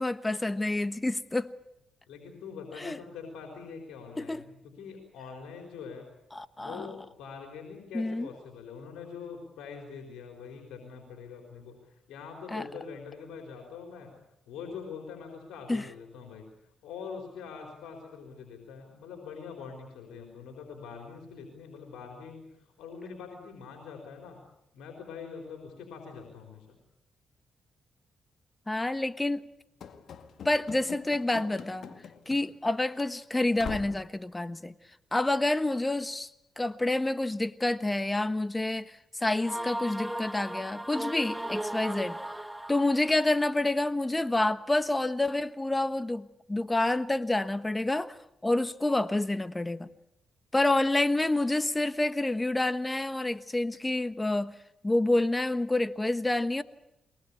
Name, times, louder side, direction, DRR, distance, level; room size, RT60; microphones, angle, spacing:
voice 1, 0.0-1.5 2.8-3.0 4.2-4.4 6.3-6.9 7.9-8.3 12.5-12.7 15.7-15.9 28.7-29.4 30.4-32.0 32.3-34.7 35.1-36.3 36.6-42.2 42.7-49.9 50.5-54.5 54.8-56.6, left 2 dB, 20° left, 14 dB, 1.3 m, -28 dB
voice 2, 2.1-4.5 4.8-6.1 6.6-14.1 14.5-16.4 16.8-24.4 24.7-26.8, left 6 dB, 90° left, 2 dB, 4.2 m, -44 dB
Run / Slam, 29.8-32.7 33.0-33.1 33.6-34.1, left 7 dB, 70° left, 1.9 m, -43 dB
sound 1, 39.4-43.2, right 1 dB, 10° right, 1.0 m, -36 dB
23.0 x 19.5 x 8.6 m, 0.81 s
cardioid pair, 65°, 0 cm